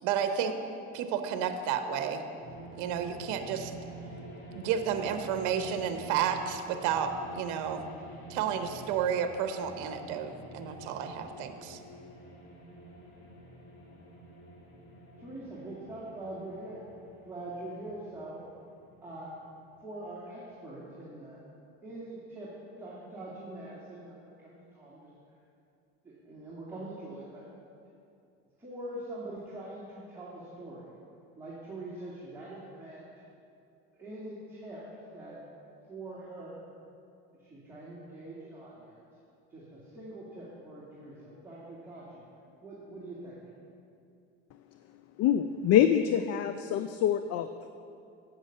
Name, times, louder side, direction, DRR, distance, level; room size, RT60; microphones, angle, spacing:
voice 1, 0.0-0.6 0.9-2.2 2.8-3.7 4.5-7.8 8.3-11.8, right 8 dB, 70° right, 8 dB, 0.8 m, -31 dB
sound 1, 2.4-20.1, right 1 dB, 35° left, 2.3 m, -48 dB
voice 2, 15.2-16.8 17.2-18.4 19.0-19.4 19.8-21.4 21.8-22.5 22.8-25.1 26.0-27.4 28.6-30.8 31.4-33.1 33.9-34.8 35.1-35.4 35.9-36.7 37.3-39.0 39.5-42.2 42.6-43.4, right 1 dB, 10° right, -8 dB, 2.0 m, -43 dB
voice 3, 45.2-47.7, left 10 dB, 50° left, 10 dB, 0.4 m, -25 dB
8.5 x 6.3 x 6.5 m, 2.6 s
supercardioid pair, 95°, 32 cm